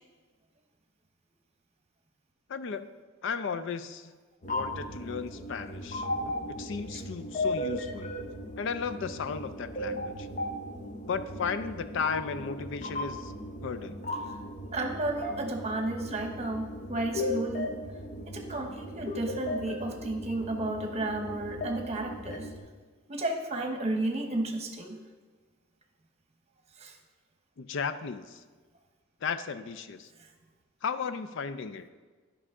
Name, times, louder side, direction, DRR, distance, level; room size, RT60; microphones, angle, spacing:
voice 1, 2.5-2.9 3.2-4.1 4.4-6.1 6.5-8.1 8.6-10.3 11.1-13.3 13.6-14.0 27.6-28.4 29.2-30.1 30.8-31.9, left 5 dB, 65° left, 12 dB, 0.4 m, -35 dB
sound 1, 4.4-22.6, left 1 dB, 35° left, 0.8 m, -36 dB
voice 2, 6.2-6.5 6.9-7.0 14.3-14.4 14.7-17.8 18.3-22.5 23.1-25.0 26.8-27.0, right 2 dB, 30° right, 4 dB, 1.0 m, -33 dB
12.0 x 5.5 x 3.7 m, 1.4 s
head